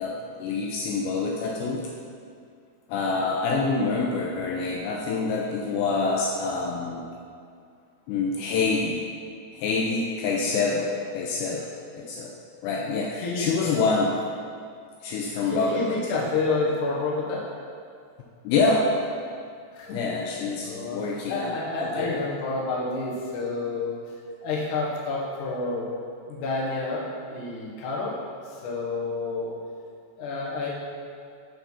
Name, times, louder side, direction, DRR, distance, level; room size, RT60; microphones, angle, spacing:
voice 1, 0.0-1.8 2.9-7.0 8.1-9.0 9.5-12.4 12.6-14.3 15.0-16.3 18.4-18.9 19.9-22.2, left 4 dB, 90° left, -1 dB, 2.5 m, -26 dB
voice 2, 15.5-17.4 19.7-20.0 20.6-21.0 21.3-24.0 24.4-25.9 26.3-28.2 28.6-29.6 30.2-30.7, left 3 dB, 65° left, -5 dB, 2.0 m, -29 dB
6.9 x 6.0 x 5.6 m, 2.3 s
omnidirectional pair, 5.6 m